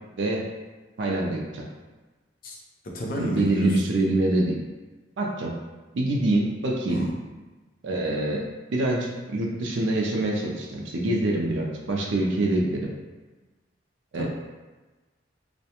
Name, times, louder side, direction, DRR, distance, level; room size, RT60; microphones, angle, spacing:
voice 1, 0.1-0.5 1.0-1.6 3.2-4.5 5.2-5.5 5.9-7.0 7.8-12.9 14.1-14.3, right 2 dB, 75° right, -1 dB, 0.4 m, -25 dB
voice 2, 2.8-3.8 6.9-7.2 14.1-14.3, equal, 45° left, -2 dB, 0.5 m, -31 dB
2.4 x 2.1 x 2.8 m, 1.2 s
head